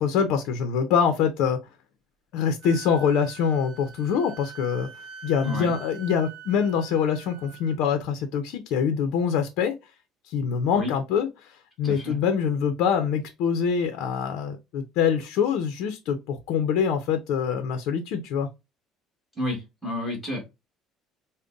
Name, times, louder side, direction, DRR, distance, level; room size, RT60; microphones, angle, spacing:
voice 1, 0.0-1.6 2.3-4.9 5.2-9.7 10.3-11.3 11.8-18.5, left 7 dB, 70° left, 0.6 m, -24 dB
Wind instrument woodwind instrument, 2.6-7.8, right 7 dB, 70° right, 0.7 m, -44 dB
voice 2, 11.8-12.2 19.4-20.4, left 1 dB, 5° right, 1.4 m, -31 dB
5.1 x 2.1 x 2.5 m
cardioid pair, 155°, 0 cm